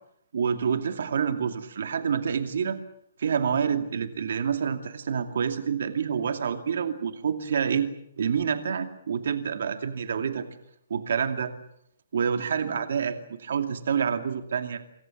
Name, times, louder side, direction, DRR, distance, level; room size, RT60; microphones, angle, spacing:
voice 1, 0.3-2.8 3.2-7.9 8.2-10.4 10.9-11.5 12.1-14.8, right 7 dB, 55° right, 8 dB, 2.4 m, -27 dB
26.5 x 23.0 x 7.3 m, 0.70 s
hypercardioid pair, 175°, 0 cm